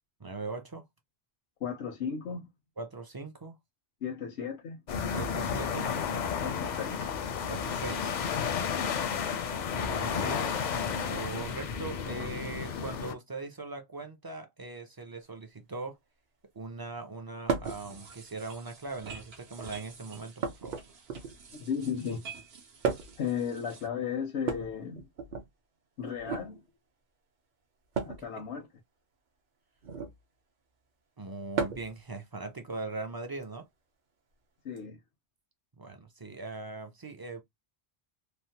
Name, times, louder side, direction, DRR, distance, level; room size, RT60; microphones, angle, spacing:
voice 1, 0.2-0.8 2.8-3.5 5.1-5.9 7.5-8.1 9.8-16.0 16.5-20.8 28.2-28.3 31.2-33.7 35.8-37.4, right 3 dB, 35° right, 0.4 m, -40 dB
voice 2, 1.6-2.5 4.0-4.8 6.4-7.1 21.5-22.2 23.2-25.1 26.0-26.6 28.0-28.7 34.6-35.0, left 7 dB, 90° left, 0.9 m, -35 dB
sound 1, 4.9-13.1, left 7 dB, 55° left, 0.5 m, -32 dB
sound 2, 17.5-17.8 18.9-19.4 20.4-21.5 22.8-23.3 24.4-25.5 26.2-26.5 27.9-28.2 29.8-30.2 31.5-32.0 33.4-33.5 34.8-34.9, right 5 dB, 50° right, 0.7 m, -34 dB
sound 3, 17.6-23.9, right 5 dB, 75° right, 1.0 m, -50 dB
3.2 x 2.0 x 2.7 m
omnidirectional pair, 1.1 m